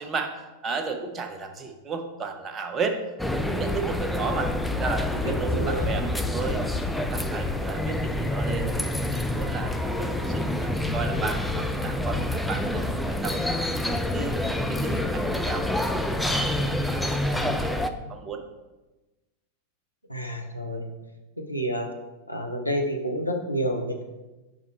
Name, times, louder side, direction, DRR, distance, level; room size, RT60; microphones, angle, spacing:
voice 1, 0.0-3.0 3.3-6.6 7.0-14.4 14.7-18.4, right 4 dB, 25° right, 5 dB, 0.8 m, -34 dB
sound 1, 3.2-17.9, left 1 dB, 5° left, 0.4 m, -27 dB
voice 2, 5.2-5.9 20.1-20.9 21.5-21.9 22.3-24.1, equal, 90° left, 2 dB, 0.8 m, -29 dB
5.3 x 4.9 x 4.5 m, 1.1 s
figure-of-eight pair, 90°, 0 cm